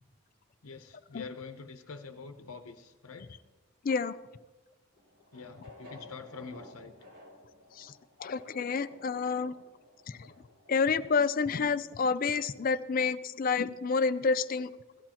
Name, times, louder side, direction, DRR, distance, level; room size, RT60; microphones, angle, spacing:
voice 1, 0.6-3.3 5.3-7.0, left 4 dB, 80° left, 6 dB, 0.8 m, -45 dB
voice 2, 3.8-4.2 7.7-7.9 8.2-9.5 10.1-10.3 10.7-14.7, left 5 dB, 40° left, 13 dB, 0.4 m, -29 dB
sound 1, 5.0-11.6, left 1 dB, 55° right, 3.7 m, -54 dB
16.5 x 14.5 x 2.9 m, 1.2 s
head